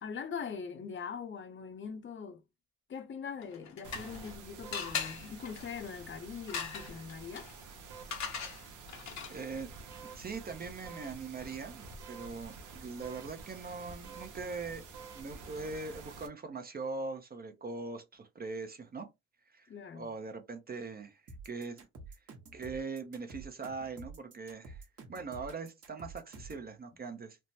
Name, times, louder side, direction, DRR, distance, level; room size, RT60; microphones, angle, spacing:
voice 1, 0.0-2.4 2.9-7.5 19.7-20.1, left 6 dB, 40° left, 0.6 m, -42 dB
sound 1, 3.4-4.3 4.7-9.6, left 6 dB, 65° left, 0.9 m, -41 dB
sound 2, 3.8-16.3, right 4 dB, 80° right, 0.8 m, -49 dB
voice 2, 9.3-14.8 15.1-19.1 19.5-21.9 22.5-27.4, right 4 dB, 30° right, 0.6 m, -41 dB
sound 3, 21.3-26.7, right 3 dB, 50° right, 1.1 m, -49 dB
3.3 x 2.0 x 2.7 m
cardioid pair, 90°, 30 cm